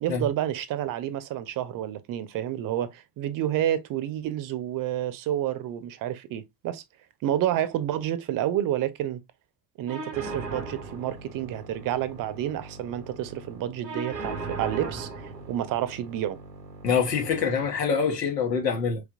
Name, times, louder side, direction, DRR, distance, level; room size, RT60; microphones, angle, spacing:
voice 1, 0.0-6.8 7.2-9.2 9.8-16.4, right 11 dB, 45° right, 0.7 m, -29 dB
sound 1, 9.9-17.9, right 3 dB, 90° right, 1.0 m, -39 dB
voice 2, 16.8-19.0, left 6 dB, 85° left, 1.1 m, -25 dB
4.6 x 3.3 x 2.4 m
figure-of-eight pair, 55°, 48 cm